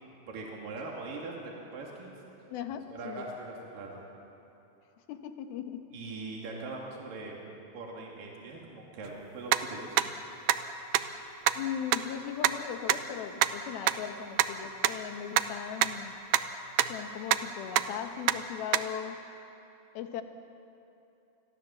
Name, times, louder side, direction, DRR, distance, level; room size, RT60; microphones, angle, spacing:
voice 1, 0.3-2.1 2.9-4.0 5.9-7.4 7.7-9.9, right 3 dB, 65° right, -2 dB, 4.3 m, -41 dB
voice 2, 2.5-3.3 5.1-5.9 11.5-16.2 16.9-19.2 19.9-20.2, left 9 dB, 75° left, 7 dB, 3.1 m, -38 dB
sound 1, 9.0-9.1 9.5-9.6 10.0-10.1 10.5-10.6 10.9-11.0 11.5-11.6 11.9-12.0 12.4-12.5 12.9-13.0 13.4-13.5 13.9-14.0 14.4-14.5 14.8-14.9 15.4-15.5 15.8-15.9 16.3-16.4 16.8-16.9 17.3-17.4 17.8-17.9 18.3-18.4 18.7-18.8, right 13 dB, 80° right, 2.2 m, -23 dB
28.5 x 21.5 x 7.3 m, 2.9 s
omnidirectional pair, 4.5 m